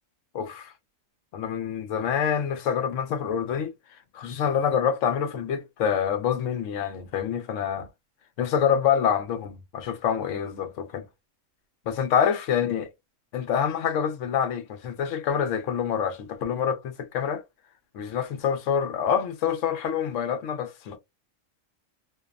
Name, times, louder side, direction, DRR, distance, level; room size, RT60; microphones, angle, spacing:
voice 1, 0.3-0.7 1.3-3.7 4.1-7.9 8.4-11.0 11.9-12.9 13.3-17.4 17.9-21.0, left 8 dB, 75° left, 1.0 m, -26 dB
2.6 x 2.0 x 2.3 m
omnidirectional pair, 1.3 m